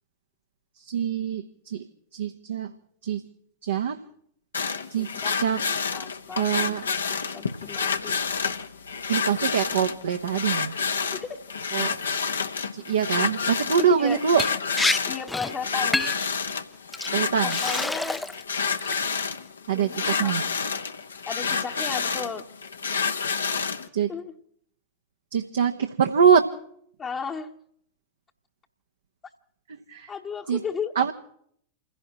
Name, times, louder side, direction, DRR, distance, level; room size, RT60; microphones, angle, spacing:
voice 1, 0.8-1.8 2.1-2.7 3.0-3.2 3.6-4.0 4.9-5.1 5.4-5.6 6.3-6.8 9.1-10.7 11.7-12.0 12.7-14.4 17.1-17.6 19.7-20.4 23.9-24.1 25.3-26.5 29.7-30.1 30.5-30.6 31.0-31.1, right 8 dB, 65° right, 5 dB, 0.9 m, -24 dB
sound 1, 4.5-23.9, left 5 dB, 75° left, 1.0 m, -29 dB
voice 2, 5.0-5.6 5.9-6.8 7.1-8.2 11.1-11.4 13.8-14.2 15.0-16.1 17.4-18.2 19.7-20.4 21.3-22.5 24.1-24.3 27.0-27.5 30.1-31.1, left 6 dB, 25° left, 0 dB, 1.0 m, -34 dB
Liquid, 14.4-14.5 14.8-15.0 15.3-15.5 15.9-16.3 16.9-17.1 17.5-18.4 18.8-19.2, left 2 dB, 5° left, 0.6 m, -27 dB
29.0 x 16.5 x 3.0 m, 0.66 s
figure-of-eight pair, 90°, 0 cm